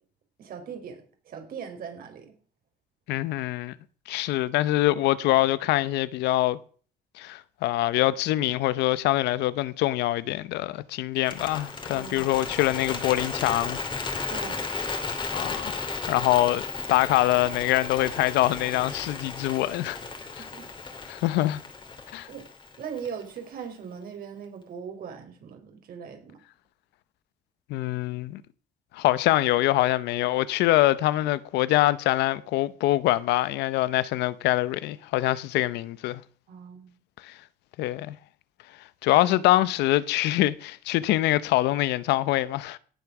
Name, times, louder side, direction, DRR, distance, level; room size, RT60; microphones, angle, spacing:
voice 1, 0.4-2.3 11.9-12.4 14.3-14.6 20.5-20.6 22.3-22.4 22.8-26.4 36.5-36.9, right 7 dB, 60° right, 4.4 m, -39 dB
voice 2, 3.1-3.7 4.1-6.6 7.2-13.8 15.3-16.6 16.9-20.0 20.3-20.4 21.1-21.6 22.1-22.3 27.7-28.4 28.9-36.2 37.2-37.3 37.8-38.2 39.0-42.8, left 16 dB, 85° left, 0.8 m, -24 dB
Bird, 11.2-23.4, left 4 dB, 30° left, 2.6 m, -34 dB
17.5 x 7.7 x 6.0 m
cardioid pair, 110°, 17 cm